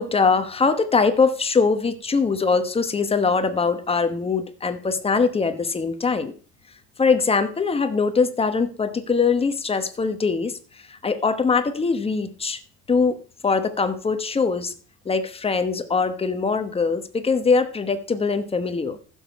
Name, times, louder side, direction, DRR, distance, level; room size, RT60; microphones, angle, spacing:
voice 1, 0.0-6.3 7.0-12.6 12.9-13.2 13.4-14.7 15.0-19.0, left 4 dB, 15° left, 9 dB, 1.1 m, -22 dB
14.5 x 7.3 x 4.7 m, 0.43 s
cardioid pair, 140°, 34 cm